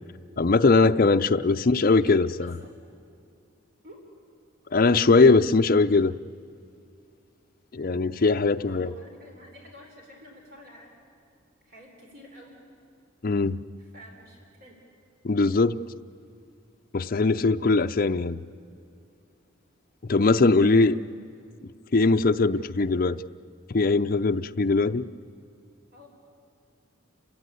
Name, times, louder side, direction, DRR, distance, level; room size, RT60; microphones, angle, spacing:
voice 1, 0.4-2.5 4.7-6.1 7.7-8.9 13.2-13.6 15.2-15.8 16.9-18.4 20.1-21.0 21.9-23.2 23.7-25.1, left 3 dB, 45° left, 0.5 m, -21 dB
voice 2, 1.5-2.1 2.4-2.7 3.8-4.0 8.6-10.9 11.6-12.6 13.8-14.8 20.5-21.0 22.5-22.7 25.9-26.1, left 1 dB, 45° right, 3.7 m, -49 dB
29.5 x 16.0 x 9.9 m
head